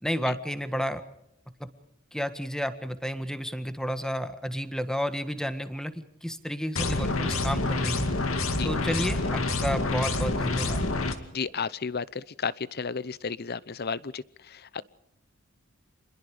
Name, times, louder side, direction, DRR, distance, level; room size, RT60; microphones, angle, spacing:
voice 1, 0.0-1.0 2.1-8.1 8.6-10.8, equal, 5° left, 9 dB, 1.6 m, -31 dB
sound 1, 6.8-11.2, left 2 dB, 80° left, 2.4 m, -27 dB
voice 2, 11.3-14.8, left 5 dB, 50° left, 19 dB, 0.8 m, -33 dB
28.0 x 21.0 x 5.0 m, 0.82 s
head